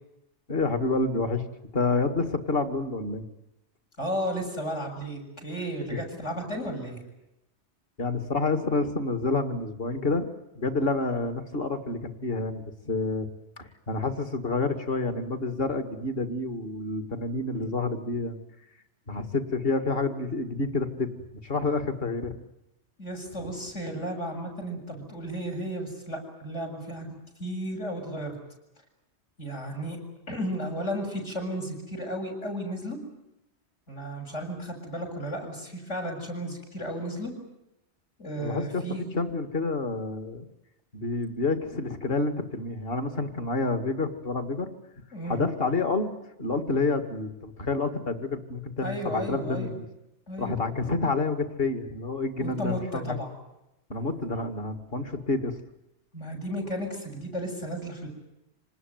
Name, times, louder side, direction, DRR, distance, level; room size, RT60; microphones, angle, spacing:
voice 1, 0.5-1.4 1.7-3.2 5.9-6.0 8.0-10.3 10.6-13.3 13.6-18.4 19.1-21.1 21.4-22.3 38.4-38.8 39.1-40.5 40.9-44.7 45.3-46.1 46.4-49.8 50.4-53.2 53.9-55.6, left 3 dB, 55° left, 8 dB, 2.3 m, -28 dB
voice 2, 4.0-7.0 23.0-28.4 29.4-30.0 30.3-33.0 33.9-37.3 38.2-39.1 45.1-45.4 48.8-49.7 50.3-50.5 52.4-53.3 56.1-58.1, equal, 80° left, 1 dB, 7.6 m, -34 dB
26.5 x 19.5 x 9.3 m, 0.89 s
omnidirectional pair, 1.2 m